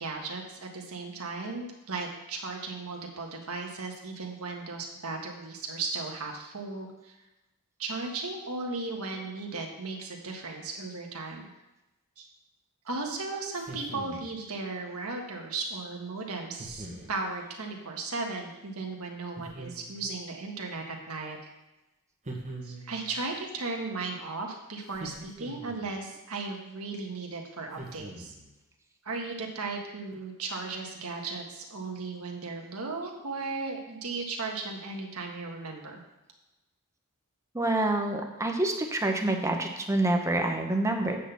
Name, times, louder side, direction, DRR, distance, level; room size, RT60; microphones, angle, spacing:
voice 1, 0.0-7.1 7.8-11.5 12.2-12.3 12.8-21.5 22.6-28.3 29.0-36.0, right 3 dB, 70° right, 1 dB, 1.4 m, -36 dB
sound 1, 13.5-14.4 16.6-17.2 19.4-20.1 22.2-23.1 24.9-25.9 27.7-28.5, right 2 dB, 30° right, 1.5 m, -42 dB
voice 2, 37.5-41.2, right 2 dB, 15° right, 3 dB, 0.9 m, -27 dB
8.5 x 4.0 x 7.0 m, 1.0 s
head